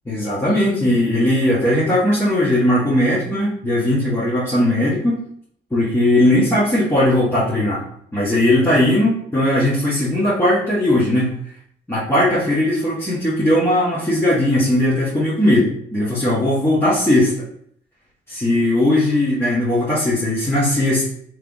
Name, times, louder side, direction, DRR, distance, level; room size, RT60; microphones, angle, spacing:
voice 1, 0.0-5.2 5.7-7.8 8.1-11.3 11.9-17.4 18.3-21.1, left 1 dB, 10° left, -9 dB, 1.5 m, -18 dB
3.6 x 3.4 x 3.4 m, 0.65 s
cardioid pair, 90°, 20 cm